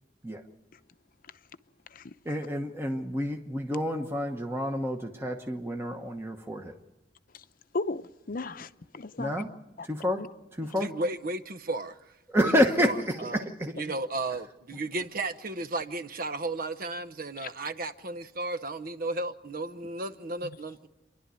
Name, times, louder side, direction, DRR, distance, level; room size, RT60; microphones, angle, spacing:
voice 1, 2.2-6.7 9.2-9.5 9.9-10.2 10.5-10.9 12.3-13.7, equal, 15° right, 1.1 m, -29 dB
voice 2, 7.7-9.3 9.8-9.9 10.2-10.3 20.4-20.6, left 3 dB, 55° left, 0.7 m, -35 dB
voice 3, 10.8-12.0 12.4-12.5 12.8-13.4 13.8-20.9, right 2 dB, 55° right, 0.9 m, -34 dB
28.5 x 11.5 x 9.4 m
head